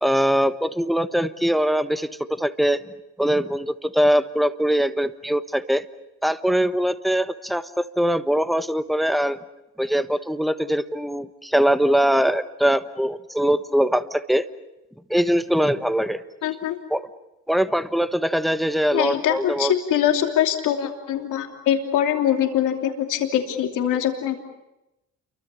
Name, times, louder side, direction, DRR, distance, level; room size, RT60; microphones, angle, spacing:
voice 1, 0.0-2.8 3.2-5.8 6.2-9.4 9.8-14.4 15.1-16.2 16.9-17.1 17.5-19.7, equal, ahead, 11 dB, 1.2 m, -22 dB
voice 2, 16.4-16.8 18.9-24.4, left 10 dB, 90° left, 3 dB, 3.0 m, -23 dB
29.0 x 24.0 x 7.0 m, 0.94 s
cardioid pair, 90°, 30 cm